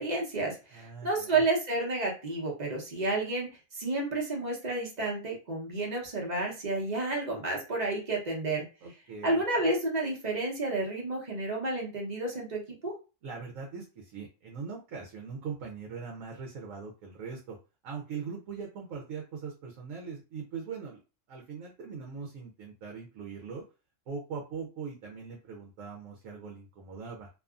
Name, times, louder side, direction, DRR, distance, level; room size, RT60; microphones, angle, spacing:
voice 1, 0.0-8.6 9.2-12.9, right 2 dB, 35° right, -1 dB, 0.9 m, -31 dB
voice 2, 0.7-1.4 8.8-9.4 13.2-17.6 17.8-21.0 21.3-23.6 24.1-27.3, right 5 dB, 80° right, 0 dB, 1.0 m, -41 dB
2.6 x 2.4 x 2.4 m, 0.31 s
omnidirectional pair, 1.4 m